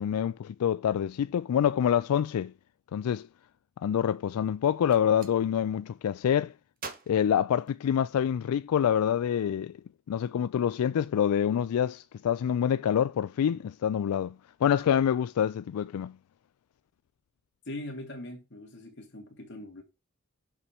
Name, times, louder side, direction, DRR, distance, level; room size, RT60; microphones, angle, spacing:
voice 1, 0.0-2.5 2.9-3.3 3.8-6.5 7.1-9.7 10.1-14.3 14.6-16.1, left 9 dB, 85° left, 0.3 m, -26 dB
Gunshot gunfire, 4.7-5.4 6.8-8.2, right 5 dB, 40° right, 1.2 m, -45 dB
voice 2, 17.7-19.8, left 1 dB, 55° left, 2.0 m, -41 dB
7.0 x 5.0 x 4.3 m
head